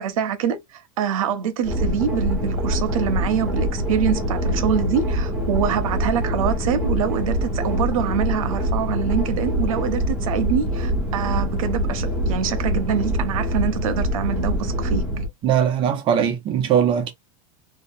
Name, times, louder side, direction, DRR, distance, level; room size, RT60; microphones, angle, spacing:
voice 1, 0.0-15.1, right 8 dB, 90° right, 0.7 m, -25 dB
sound 1, 1.6-15.3, equal, 5° right, 1.0 m, -24 dB
voice 2, 15.4-17.1, right 8 dB, 30° right, 0.5 m, -20 dB
2.7 x 2.0 x 2.5 m
supercardioid pair, 155°, 17 cm